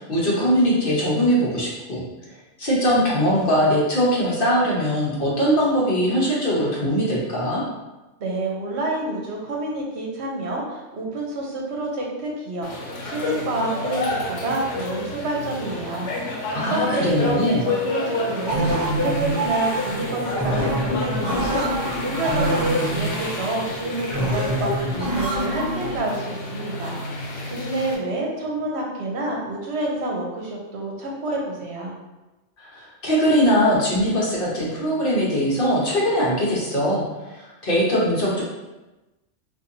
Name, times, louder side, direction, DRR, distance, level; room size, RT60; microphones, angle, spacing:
voice 1, 0.0-2.0 2.6-7.6 16.5-17.7 32.6-38.4, equal, 50° left, -5 dB, 1.0 m, -21 dB
voice 2, 8.2-31.9, right 2 dB, 65° right, -1 dB, 0.9 m, -28 dB
sound 1, 12.6-28.0, left 2 dB, 75° left, 1.0 m, -30 dB
sound 2, 18.5-26.0, right 1 dB, 25° right, 0.7 m, -25 dB
4.1 x 2.5 x 2.6 m, 1.1 s
omnidirectional pair, 1.2 m